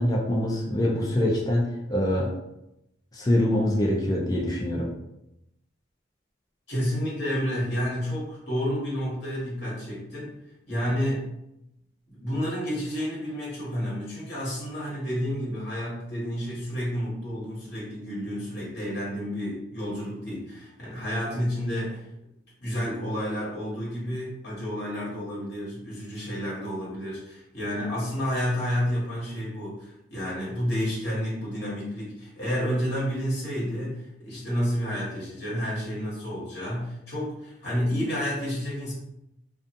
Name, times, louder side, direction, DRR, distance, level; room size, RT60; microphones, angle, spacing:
voice 1, 0.0-1.6 1.9-2.3 3.1-4.9, left 1 dB, 20° left, -2 dB, 0.3 m, -24 dB
voice 2, 6.7-10.3 10.7-11.3 12.1-22.0 22.6-38.9, equal, 55° left, -6 dB, 1.2 m, -30 dB
2.4 x 2.3 x 2.6 m, 0.83 s
head